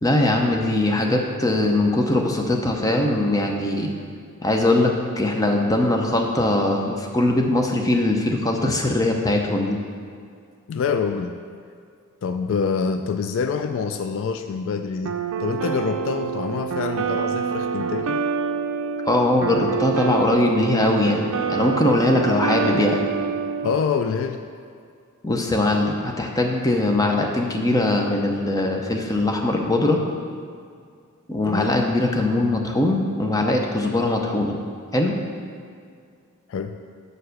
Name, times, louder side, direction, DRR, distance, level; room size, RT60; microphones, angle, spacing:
voice 1, 0.0-3.9 4.4-9.8 19.0-23.1 25.2-30.0 31.3-34.6 34.9-35.2, left 2 dB, 15° left, 1 dB, 0.6 m, -21 dB
voice 2, 10.7-11.4 12.2-15.1 15.4-18.2 23.6-24.5 31.5-31.8 36.5-36.8, left 5 dB, 60° left, 7 dB, 0.3 m, -26 dB
sound 1, 15.1-23.8, right 6 dB, 65° right, 0.5 m, -26 dB
6.4 x 4.7 x 6.4 m, 2.2 s
head